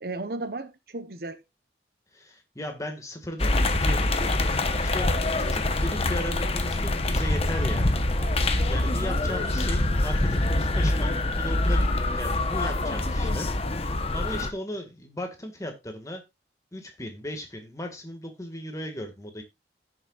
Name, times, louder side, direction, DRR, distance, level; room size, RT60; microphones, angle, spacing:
voice 1, 0.0-1.4 11.7-11.9, right 2 dB, 55° right, 0.8 m, -35 dB
voice 2, 2.1-4.4 4.8-8.0 8.7-13.5 13.8-16.2 16.7-19.4, left 1 dB, 20° left, 1.8 m, -37 dB
sound 1, 3.4-14.5, left 2 dB, 35° left, 0.9 m, -25 dB
16.0 x 6.7 x 2.4 m
head